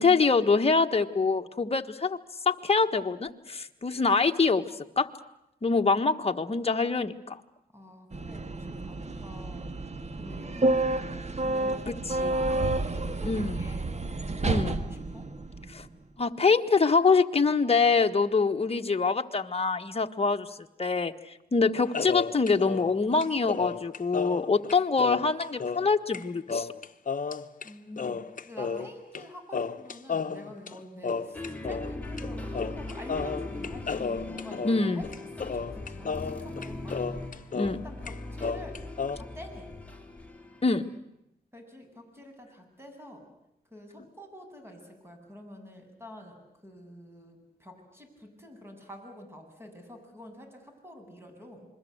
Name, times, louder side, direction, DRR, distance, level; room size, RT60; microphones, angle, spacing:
voice 1, 0.0-2.2 2.4-4.6 5.0-5.1 5.6-7.4 12.2-12.3 13.2-13.6 14.4-14.8 15.7-15.8 16.2-20.5 20.8-21.1 21.5-26.7 34.6-35.0 37.5-37.8 40.6-40.9, left 4 dB, 35° left, 6 dB, 1.4 m, -25 dB
voice 2, 7.7-9.7 10.2-13.9 14.4-15.3 27.1-37.0 37.8-38.9 39.1-39.7 41.5-43.2 43.7-51.7, equal, 15° right, 4 dB, 7.7 m, -47 dB
sound 1, 8.1-15.9, right 2 dB, 40° right, 1.7 m, -30 dB
sound 2, 21.9-25.9 26.1-26.2 26.5-27.7 28.0-29.2 29.5-31.9 32.2-32.3 32.5-37.8 38.1-39.2, left 5 dB, 55° left, 1.0 m, -33 dB
sound 3, 31.3-41.0, left 2 dB, 10° left, 3.6 m, -40 dB
27.5 x 22.0 x 8.0 m, 0.81 s
cardioid pair, 65°, 17 cm